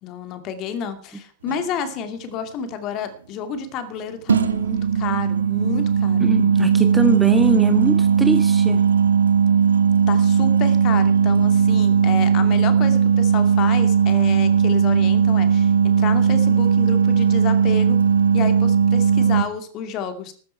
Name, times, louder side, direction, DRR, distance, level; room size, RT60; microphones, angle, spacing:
voice 1, 0.0-6.3 10.1-18.0 18.3-20.3, left 6 dB, 40° left, 9 dB, 2.4 m, -30 dB
sound 1, 1.5-1.6 4.3-19.4, right 7 dB, 70° right, 1.3 m, -17 dB
voice 2, 6.2-8.8, right 2 dB, 5° right, 7 dB, 1.6 m, -22 dB
14.0 x 13.5 x 4.4 m, 0.42 s
figure-of-eight pair, 90°, 0 cm